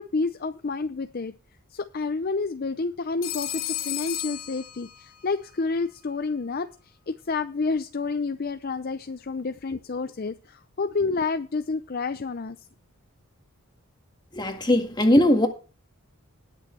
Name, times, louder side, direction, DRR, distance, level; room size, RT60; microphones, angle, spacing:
voice 1, 0.0-1.3 1.7-6.7 7.1-12.6, left 4 dB, 40° left, 0.5 m, -29 dB
Telephone, 3.2-5.3, left 12 dB, 65° left, 2.4 m, -33 dB
voice 2, 14.3-15.5, left 1 dB, 20° left, 1.8 m, -20 dB
19.5 x 7.0 x 3.3 m
head